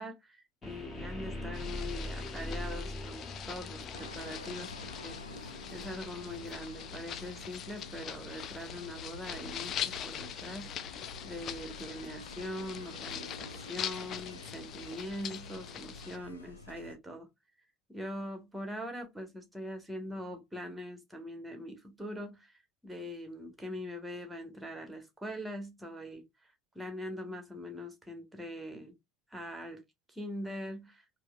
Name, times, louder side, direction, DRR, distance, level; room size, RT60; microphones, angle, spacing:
voice 1, 0.0-5.4 5.7-17.3 17.9-26.2 26.7-28.9 29.3-29.8 30.1-31.0, left 1 dB, 5° right, 1.0 m, -42 dB
sound 1, 0.6-12.6, left 1 dB, 20° left, 1.5 m, -45 dB
sound 2, 1.5-16.2, left 9 dB, 40° left, 0.3 m, -43 dB
sound 3, 3.9-16.9, left 2 dB, 75° left, 0.7 m, -49 dB
4.5 x 2.0 x 2.2 m
figure-of-eight pair, 70°, 0 cm